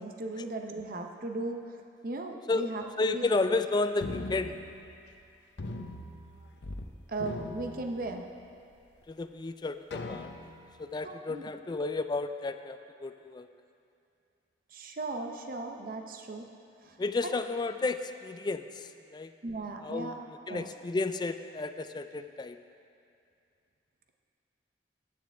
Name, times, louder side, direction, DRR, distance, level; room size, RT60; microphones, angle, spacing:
voice 1, 0.0-1.8 2.0-3.3 7.1-8.2 11.0-11.4 14.7-16.5 16.8-17.0 17.2-17.3 19.4-20.1 20.5-20.7, right 2 dB, 50° right, 4 dB, 0.7 m, -37 dB
voice 2, 3.0-4.6 9.1-10.3 10.8-13.5 17.0-19.3 19.8-20.2 20.5-22.6, left 3 dB, 25° left, 10 dB, 0.3 m, -32 dB
sound 1, 4.0-5.2 5.6-6.9 7.1-8.5 9.0-9.1 9.9-10.7, left 2 dB, 70° left, 0.7 m, -40 dB
15.0 x 9.4 x 3.5 m, 2.6 s
head